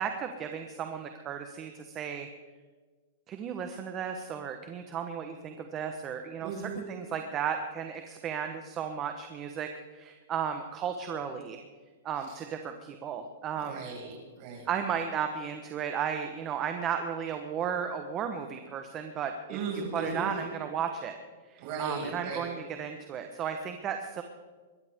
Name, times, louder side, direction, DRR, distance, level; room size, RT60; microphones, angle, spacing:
voice 1, 0.0-2.3 3.3-11.6 12.0-13.9 14.7-19.6 19.9-21.2 21.5-24.2, right 7 dB, 25° right, 6 dB, 1.0 m, -34 dB
voice 2, 6.4-6.9 12.3-12.4 13.6-14.7 19.5-20.3 21.6-22.5, right 4 dB, 45° right, -1 dB, 5.8 m, -37 dB
21.5 x 14.0 x 3.6 m, 1.4 s
hypercardioid pair, 150°, 0 cm